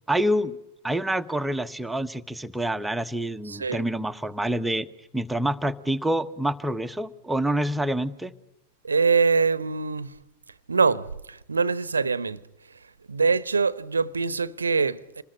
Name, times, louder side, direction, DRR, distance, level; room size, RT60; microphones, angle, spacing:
voice 1, 0.1-0.6 0.8-4.9 5.1-8.3, right 1 dB, 5° right, 1.2 m, -27 dB
voice 2, 3.5-3.8 8.8-10.1 10.7-12.4 13.1-15.2, right 5 dB, 75° right, 1.0 m, -24 dB
28.0 x 20.5 x 9.7 m
figure-of-eight pair, 90°, 0 cm